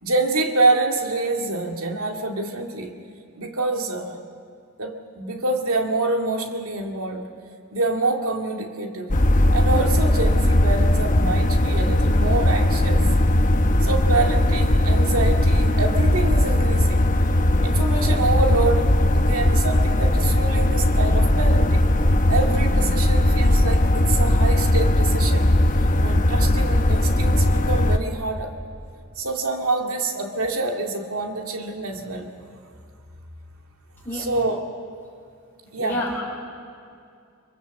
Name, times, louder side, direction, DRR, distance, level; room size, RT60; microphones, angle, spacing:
voice 1, 0.0-2.9 3.4-4.2 4.8-7.3 7.7-9.1 9.5-13.1 13.8-17.0 17.6-21.8 22.3-25.5 26.0-28.5 29.2-32.3 34.1-34.6 35.7-36.0, right 3 dB, 85° right, 3 dB, 2.2 m, -26 dB
sound 1, 9.1-28.0, left 1 dB, 40° left, 1.0 m, -18 dB
voice 2, 35.8-36.2, left 1 dB, 10° left, -6 dB, 4.2 m, -28 dB
24.0 x 23.5 x 7.2 m, 2.4 s
head